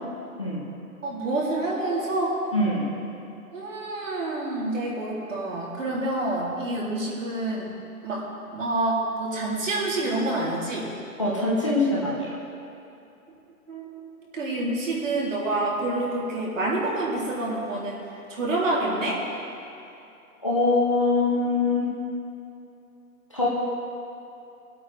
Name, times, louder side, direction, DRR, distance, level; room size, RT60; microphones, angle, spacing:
voice 1, 1.0-2.4 3.5-7.7 8.0-8.2 8.5-10.9 13.7-18.0 18.3-19.2, right 2 dB, 55° right, -5 dB, 3.2 m, -27 dB
voice 2, 2.5-2.9 11.2-12.3 20.4-21.9 23.3-23.5, left 2 dB, 20° left, -7 dB, 0.9 m, -23 dB
23.5 x 8.5 x 3.4 m, 2.7 s
hypercardioid pair, 175°, 45 cm